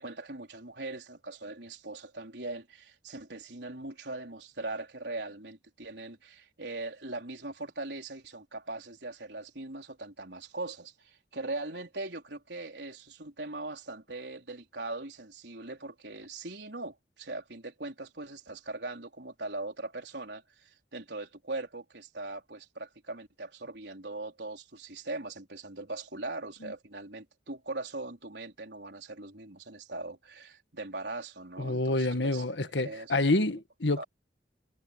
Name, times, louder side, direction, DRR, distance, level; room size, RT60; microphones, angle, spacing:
voice 1, 0.0-33.1 33.5-33.6 34.0-34.1, right 2 dB, 75° right, 4.4 m, -40 dB
voice 2, 31.6-34.0, left 2 dB, 85° left, 1.6 m, -28 dB
head